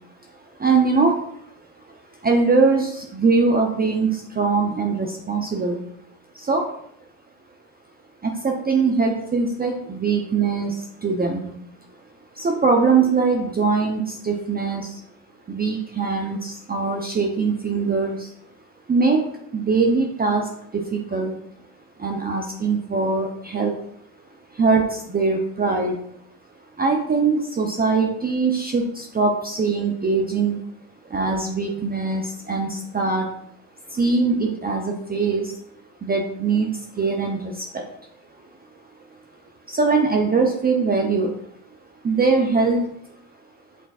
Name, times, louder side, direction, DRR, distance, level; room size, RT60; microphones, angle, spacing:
voice 1, 0.6-1.2 2.2-5.8 6.3-6.7 8.2-11.5 12.3-15.0 15.5-18.3 18.9-21.4 22.0-23.8 24.5-26.0 26.8-30.6 31.0-33.3 33.9-35.5 36.0-37.9 39.7-41.4 42.0-42.9, right 4 dB, 20° right, 2 dB, 0.6 m, -22 dB
5.8 x 3.8 x 2.4 m, 0.70 s
hypercardioid pair, 70°, 46 cm